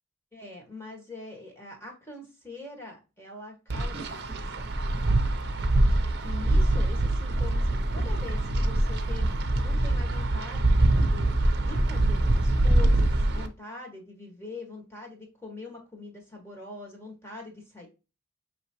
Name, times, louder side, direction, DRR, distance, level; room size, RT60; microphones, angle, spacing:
voice 1, 0.3-4.7 6.2-9.3 9.6-10.6 11.0-17.9, left 2 dB, 10° left, 0 dB, 1.6 m, -43 dB
Wind, 3.7-13.5, right 1 dB, 55° right, 0.7 m, -24 dB
5.9 x 3.1 x 2.9 m, 0.29 s
head